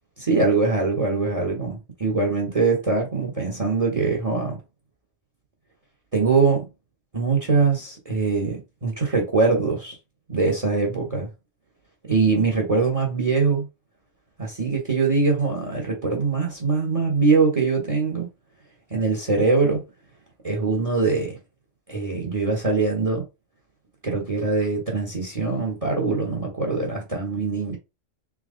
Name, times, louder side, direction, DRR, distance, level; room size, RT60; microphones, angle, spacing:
voice 1, 0.2-4.6 6.1-6.7 7.1-10.0 10.3-11.3 12.0-13.6 14.4-18.3 18.9-19.8 20.4-21.4 21.9-23.3 24.0-27.8, right 4 dB, 30° right, 1.1 m, -22 dB
3.6 x 2.9 x 3.6 m
omnidirectional pair, 1.3 m